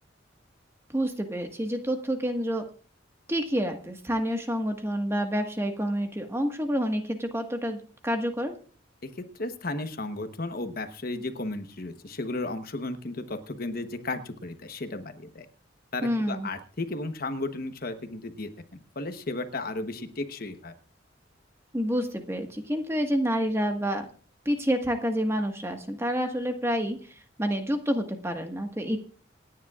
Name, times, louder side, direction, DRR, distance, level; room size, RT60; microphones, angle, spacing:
voice 1, 0.9-2.6 3.3-8.5 16.0-16.5 21.7-24.0 24.4-29.0, equal, 15° right, 5 dB, 1.5 m, -28 dB
voice 2, 9.0-15.5 15.9-18.5 18.9-20.7, left 2 dB, 50° left, 8 dB, 1.1 m, -34 dB
27.0 x 10.0 x 2.4 m, 0.40 s
head